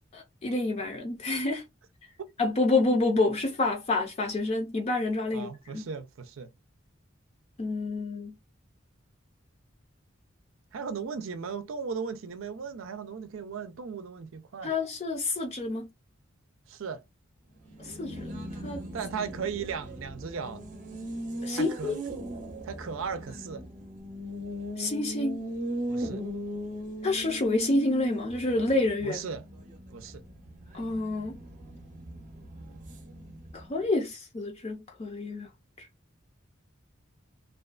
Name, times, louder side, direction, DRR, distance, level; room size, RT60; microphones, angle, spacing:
voice 1, 0.1-1.6 2.4-5.8 7.6-8.3 14.6-15.9 17.8-18.8 21.4-21.9 24.8-25.4 27.0-29.2 30.7-31.3 33.5-35.5 35.8-35.9, left 2 dB, 35° left, 0.5 m, -28 dB
voice 2, 5.3-6.5 10.7-14.7 16.7-17.0 18.9-20.6 21.5-22.0 22.6-23.6 25.9-26.2 29.0-29.4 29.9-30.2, right 6 dB, 90° right, 0.4 m, -36 dB
Race car auto racing, 17.6-33.8, right 1 dB, 40° right, 0.6 m, -39 dB
2.4 x 2.2 x 2.3 m
head